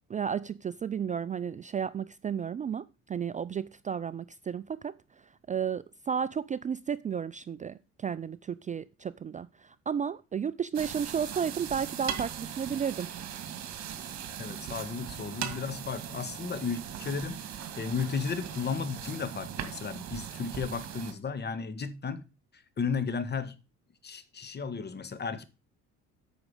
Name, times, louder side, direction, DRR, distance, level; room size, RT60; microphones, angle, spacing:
voice 1, 0.1-4.9 5.5-13.1, right 7 dB, 25° right, 0.4 m, -33 dB
sound 1, 10.7-21.1, right 9 dB, 60° right, 2.2 m, -39 dB
voice 2, 14.4-22.2 22.5-23.6 24.0-25.4, left 5 dB, 35° left, 1.5 m, -34 dB
8.8 x 6.2 x 6.5 m
cardioid pair, 90°, 31 cm